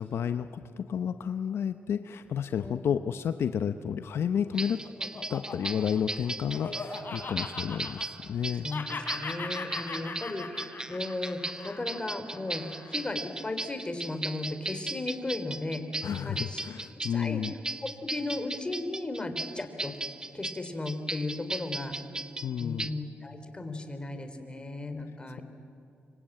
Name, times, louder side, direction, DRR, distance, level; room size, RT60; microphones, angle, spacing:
voice 1, 0.0-4.8 5.3-8.7 16.0-17.5 22.4-22.9, left 8 dB, 70° left, 10 dB, 0.7 m, -31 dB
Laughter, 4.3-8.4 8.7-13.2, left 4 dB, 50° left, 3.8 m, -40 dB
sound 1, 4.6-22.9, right 2 dB, 15° right, 1.0 m, -37 dB
voice 2, 8.6-15.9 16.2-16.6 17.1-17.4 18.0-19.9 20.3-22.0 22.6-25.4, left 2 dB, 20° left, 8 dB, 3.3 m, -35 dB
25.5 x 24.0 x 8.9 m, 2.6 s
cardioid pair, 65°, 4 cm